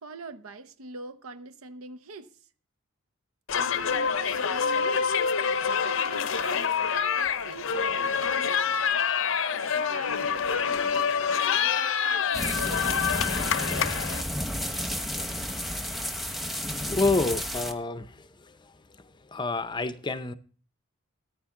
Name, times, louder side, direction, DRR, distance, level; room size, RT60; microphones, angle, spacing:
voice 1, 0.0-2.3 3.8-5.1 5.8-6.9 7.1-9.0 9.5-13.1, right 3 dB, 80° right, 0.8 m, -44 dB
sound 1, 3.5-14.2, left 6 dB, 65° left, 0.6 m, -26 dB
sound 2, 12.3-17.7, equal, ahead, 1.0 m, -31 dB
voice 2, 16.9-18.1 19.3-20.3, left 3 dB, 20° left, 0.6 m, -27 dB
14.5 x 9.6 x 3.7 m
head